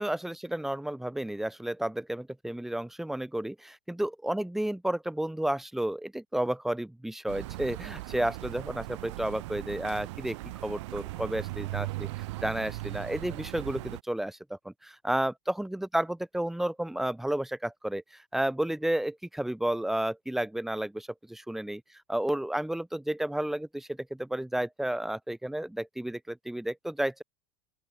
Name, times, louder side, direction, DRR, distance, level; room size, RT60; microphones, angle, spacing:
voice 1, 0.0-10.4 10.6-12.1 12.4-21.8 22.1-27.2, right 1 dB, ahead, 0.4 m, -32 dB
sound 1, 7.3-14.0, right 20 dB, 75° right, 3.8 m, -38 dB
open air
supercardioid pair, 125°, 15 cm